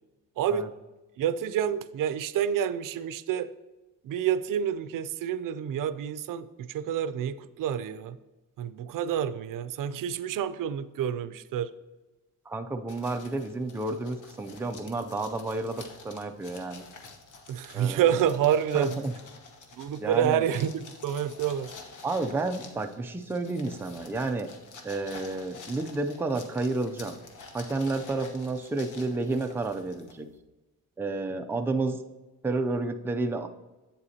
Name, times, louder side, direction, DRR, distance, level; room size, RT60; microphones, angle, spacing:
voice 1, 0.4-0.7 1.2-3.5 4.0-8.2 8.6-11.7 17.5-19.0 19.8-21.7, right 9 dB, 75° right, 13 dB, 0.5 m, -28 dB
voice 2, 12.5-16.9 17.7-18.2 18.7-19.1 20.0-20.4 22.0-24.5 24.8-27.2 27.5-30.3 31.0-32.0 32.4-33.5, right 3 dB, 5° right, 5 dB, 0.4 m, -31 dB
sound 1, 12.9-30.4, left 4 dB, 65° left, 1.1 m, -48 dB
8.3 x 7.9 x 2.8 m, 1.1 s
wide cardioid pair, 145°, 32 cm